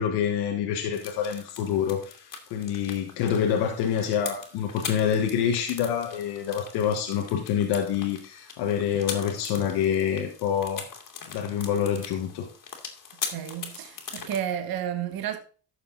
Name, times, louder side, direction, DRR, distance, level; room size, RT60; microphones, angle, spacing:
voice 1, 0.0-10.9 11.3-12.5, left 8 dB, 90° left, 1.5 m, -27 dB
sound 1, 0.9-14.4, left 6 dB, 55° left, 2.3 m, -41 dB
voice 2, 13.3-15.4, right 10 dB, 65° right, 1.2 m, -31 dB
12.0 x 6.7 x 3.9 m
cardioid pair, 85°, 39 cm